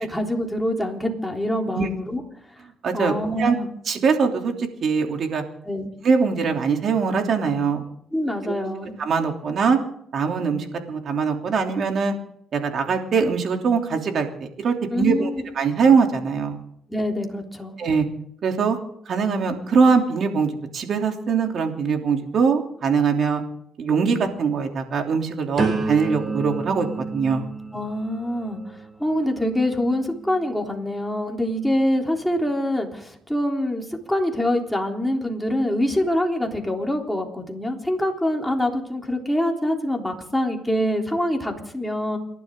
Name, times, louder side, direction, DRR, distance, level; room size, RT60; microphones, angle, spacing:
voice 1, 0.1-2.2 2.9-3.7 5.6-5.9 8.1-9.0 14.9-15.4 16.9-17.7 27.7-28.6 29.0-42.2, left 1 dB, 5° left, 1 dB, 3.5 m, -25 dB
voice 2, 2.8-3.5 3.9-5.4 6.0-7.8 8.4-8.6 9.0-9.8 10.1-12.1 12.5-15.3 15.5-16.6 17.8-18.0 18.4-18.8 19.1-23.4 23.8-26.9 27.1-27.5, right 5 dB, 60° right, 3 dB, 3.1 m, -22 dB
sound 1, 25.6-31.4 32.0-32.4, right 3 dB, 35° right, 5.7 m, -32 dB
29.0 x 12.0 x 3.8 m, 0.71 s
cardioid pair, 90°, 0 cm